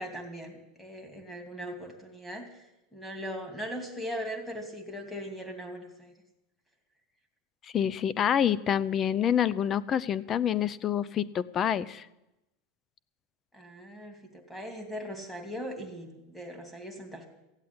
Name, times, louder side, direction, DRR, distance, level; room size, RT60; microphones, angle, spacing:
voice 1, 0.0-2.6 2.9-6.1 13.5-17.3, equal, 5° left, 4 dB, 2.6 m, -39 dB
voice 2, 7.7-12.1, left 9 dB, 25° left, 19 dB, 0.6 m, -27 dB
15.5 x 8.2 x 9.6 m, 0.95 s
supercardioid pair, 150°, 0 cm